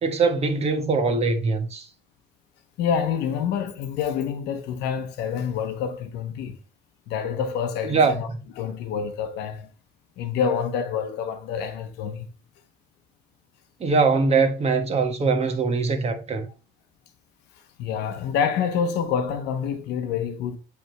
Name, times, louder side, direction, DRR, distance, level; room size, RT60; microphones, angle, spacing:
voice 1, 0.0-1.9 7.9-8.2 13.8-16.5, right 4 dB, 40° right, 1.5 m, -22 dB
voice 2, 2.8-6.6 7.1-8.3 8.6-9.7 10.2-12.3 17.5-20.6, left 7 dB, 85° left, 1.0 m, -27 dB
8.5 x 3.5 x 4.6 m
cardioid pair, 110°, 17 cm